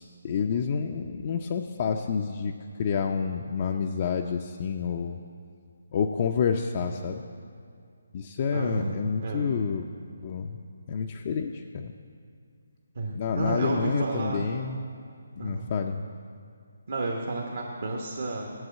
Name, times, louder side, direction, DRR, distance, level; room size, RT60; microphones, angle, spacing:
voice 1, 0.0-2.5 2.8-5.2 5.9-7.2 8.1-9.8 10.2-10.6 10.9-11.9 13.1-14.8 15.4-16.0, left 6 dB, 40° left, 3 dB, 0.4 m, -29 dB
voice 2, 8.5-9.0 9.2-9.5 12.9-14.4 15.4-15.7 16.9-18.5, right 2 dB, 60° right, -1 dB, 1.1 m, -31 dB
7.9 x 7.6 x 7.4 m, 2.3 s
figure-of-eight pair, 150°, 0 cm